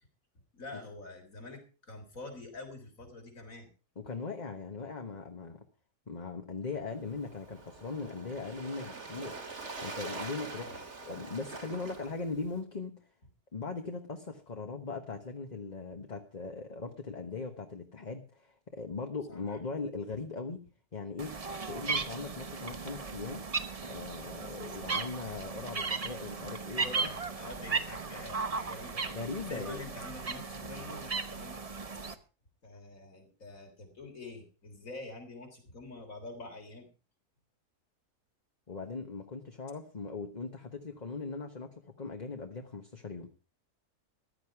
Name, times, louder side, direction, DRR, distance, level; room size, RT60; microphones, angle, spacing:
voice 1, 0.5-3.7 10.5-10.8 19.3-19.6 26.8-29.1 29.4-31.6 32.6-36.9, left 2 dB, 60° left, 5 dB, 4.1 m, -46 dB
voice 2, 4.0-5.6 6.1-9.4 9.8-13.0 13.5-20.6 20.9-23.4 23.8-27.1 29.1-29.8 38.7-43.3, left 4 dB, 30° left, 5 dB, 1.3 m, -40 dB
Waves surf, 6.9-12.6, right 3 dB, 45° right, 2.2 m, -44 dB
sound 1, 21.2-32.1, right 4 dB, 30° right, 0.9 m, -36 dB
15.0 x 12.0 x 4.7 m, 0.34 s
omnidirectional pair, 1.6 m